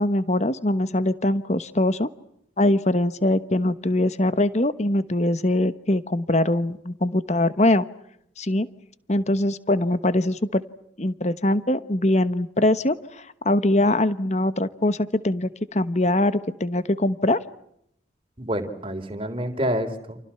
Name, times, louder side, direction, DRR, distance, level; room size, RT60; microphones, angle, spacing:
voice 1, 0.0-2.1 2.6-7.8 8.4-8.7 9.1-10.6 11.0-17.4, left 1 dB, 35° left, 14 dB, 1.2 m, -22 dB
voice 2, 18.4-20.2, equal, 30° right, 6 dB, 3.7 m, -28 dB
30.0 x 28.5 x 5.8 m, 0.74 s
head